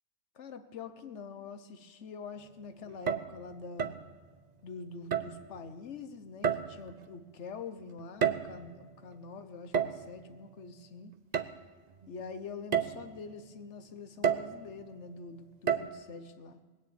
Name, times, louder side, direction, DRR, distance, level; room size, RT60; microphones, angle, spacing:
voice 1, 0.3-4.0 4.6-11.1 12.1-16.6, left 5 dB, 75° left, 9 dB, 1.3 m, -45 dB
sound 1, 2.9-3.4 3.8-4.1 5.1-5.4 6.4-6.9 8.0-8.7 9.7-10.1 11.3-11.5 12.0-12.1 12.7-13.0 14.2-14.6 15.7-15.9, right 7 dB, 45° right, 0.7 m, -30 dB
20.5 x 7.1 x 8.6 m, 1.3 s
omnidirectional pair, 1.2 m